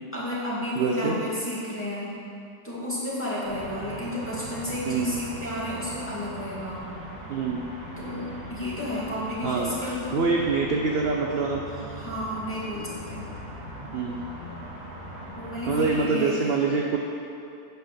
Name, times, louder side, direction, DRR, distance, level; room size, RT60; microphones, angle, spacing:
voice 1, 0.1-2.2 2.6-6.8 8.0-10.2 11.7-13.3 15.3-16.5, left 1 dB, 5° left, -8 dB, 2.2 m, -32 dB
voice 2, 0.8-1.2 4.9-5.2 7.3-7.6 9.4-11.6 13.9-14.3 15.7-17.0, right 4 dB, 50° right, 0 dB, 0.8 m, -25 dB
sound 1, 3.4-15.9, right 1 dB, 50° left, 3.0 m, -40 dB
9.2 x 5.9 x 6.9 m, 2.5 s
omnidirectional pair, 1.8 m